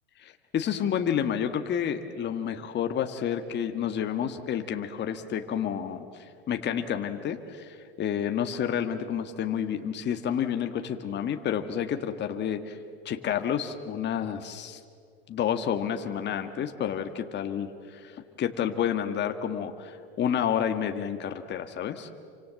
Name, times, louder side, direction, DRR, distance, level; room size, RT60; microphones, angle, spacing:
voice 1, 0.2-12.8 13.0-14.8 15.3-22.1, left 8 dB, 30° left, 6 dB, 1.7 m, -30 dB
29.0 x 25.5 x 7.6 m, 2.2 s
hypercardioid pair, 100°, 33 cm